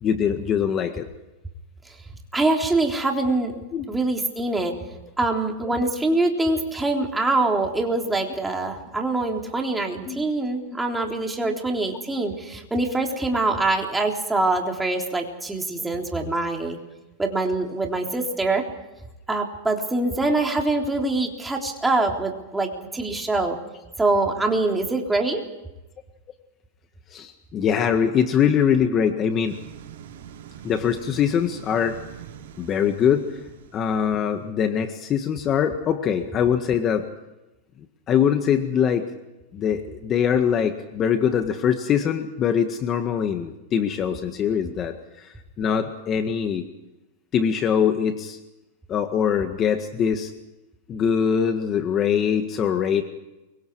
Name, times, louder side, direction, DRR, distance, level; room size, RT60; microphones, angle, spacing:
voice 1, 0.0-1.0 3.7-3.9 10.1-10.2 11.4-11.5 27.1-29.6 30.6-32.0 32.6-33.4 33.7-37.1 38.1-39.1 39.5-45.3 45.6-46.7 47.3-48.4 48.9-50.3 50.9-53.0, left 8 dB, 30° left, 7 dB, 1.7 m, -23 dB
voice 2, 2.3-3.5 3.9-4.7 5.2-16.8 17.2-18.6 19.3-23.6 24.0-25.4, right 2 dB, 10° right, 1 dB, 3.7 m, -24 dB
sound 1, 29.5-34.5, right 9 dB, 75° right, 4.5 m, -44 dB
29.0 x 24.0 x 4.8 m, 1.0 s
supercardioid pair, 140°, 0 cm